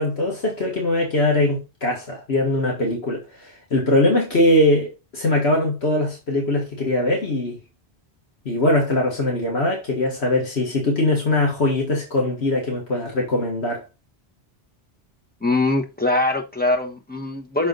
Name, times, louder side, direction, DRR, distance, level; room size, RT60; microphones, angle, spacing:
voice 1, 0.0-7.6 8.5-13.9, left 1 dB, 75° left, 2.0 m, -21 dB
voice 2, 15.4-17.7, left 2 dB, 10° left, 1.1 m, -22 dB
6.1 x 5.1 x 3.9 m
omnidirectional pair, 1.1 m